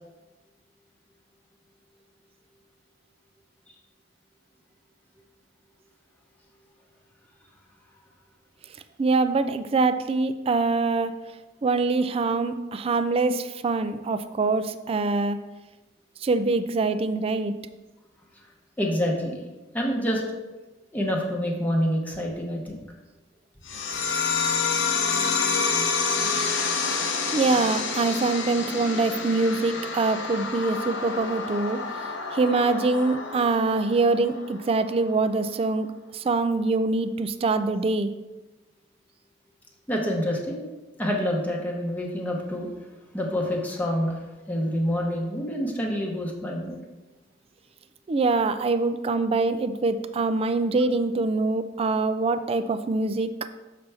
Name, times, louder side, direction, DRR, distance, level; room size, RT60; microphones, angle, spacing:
voice 1, 9.0-11.2 11.6-15.4 16.2-17.6 27.3-35.9 36.1-38.1 48.1-53.4, right 3 dB, 30° right, 11 dB, 0.3 m, -24 dB
voice 2, 18.8-19.4 19.7-20.4 20.9-22.8 39.9-40.7 41.0-42.7 43.1-46.8, equal, 10° left, -1 dB, 0.9 m, -27 dB
sound 1, 23.7-34.7, left 5 dB, 75° left, 0.8 m, -28 dB
6.7 x 5.7 x 3.4 m, 1.1 s
head